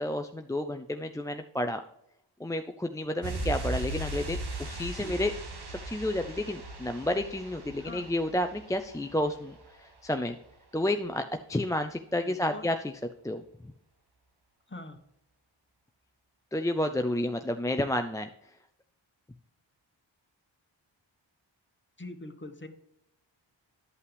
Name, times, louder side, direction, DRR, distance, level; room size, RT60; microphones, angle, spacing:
voice 1, 0.0-1.8 2.4-5.3 5.9-9.6 9.8-10.4 10.7-11.2 11.5-12.8 13.2-13.4 16.5-18.3, left 1 dB, 5° left, 6 dB, 0.4 m, -30 dB
sound 1, 3.2-9.7 10.0-10.1, right 2 dB, 55° right, 1.5 m, -38 dB
voice 2, 7.8-8.1 12.2-12.7 14.7-15.0 22.0-22.7, left 2 dB, 25° left, 7 dB, 1.2 m, -43 dB
11.0 x 5.6 x 3.3 m, 0.80 s
cardioid pair, 45°, 47 cm